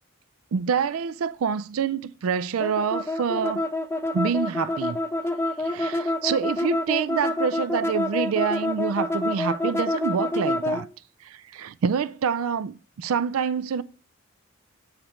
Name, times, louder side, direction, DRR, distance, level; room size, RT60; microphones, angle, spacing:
voice 1, 0.5-3.7 4.1-5.0 5.6-10.9 11.2-13.8, right 6 dB, 75° right, 0.4 m, -26 dB
sound 1, 2.6-10.8, left 1 dB, 10° left, 0.4 m, -27 dB
8.6 x 4.9 x 3.1 m
head